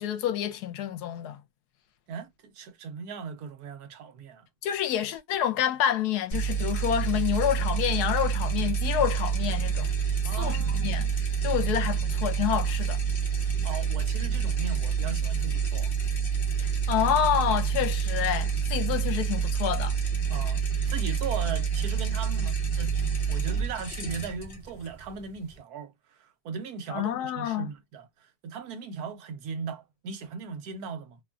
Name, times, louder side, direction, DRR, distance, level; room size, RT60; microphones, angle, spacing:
voice 1, 0.0-1.4 4.6-9.9 10.4-11.1 11.4-13.0 16.6-19.9 26.9-27.7, left 10 dB, 85° left, 1.1 m, -28 dB
voice 2, 2.1-4.5 10.2-11.1 13.6-15.9 20.3-31.2, right 6 dB, 75° right, 1.1 m, -38 dB
sound 1, 6.3-25.6, right 6 dB, 40° left, 1.0 m, -28 dB
3.0 x 2.2 x 2.3 m
omnidirectional pair, 1.7 m